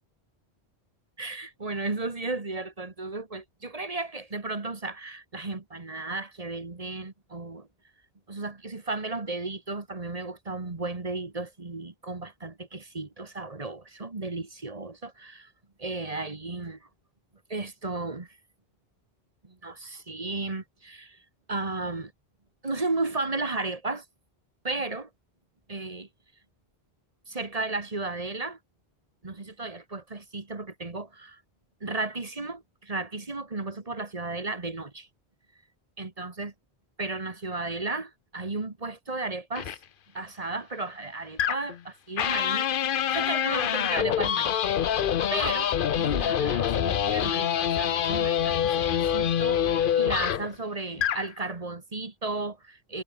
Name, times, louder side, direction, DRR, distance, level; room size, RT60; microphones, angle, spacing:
voice 1, 1.2-7.7 8.3-15.5 15.8-16.9 17.5-18.4 19.4-21.2 21.5-22.1 22.6-24.0 24.6-25.1 25.7-26.1 27.3-28.6 29.2-31.4 31.8-35.1 36.0-36.5 37.0-39.8 40.1-44.5 45.3-53.0, right 3 dB, 35° right, 1.6 m, -34 dB
sound 1, 39.6-39.8 41.4-41.8 42.2-50.5 50.9-51.3, left 9 dB, 60° left, 0.8 m, -26 dB
omnidirectional pair, 1.0 m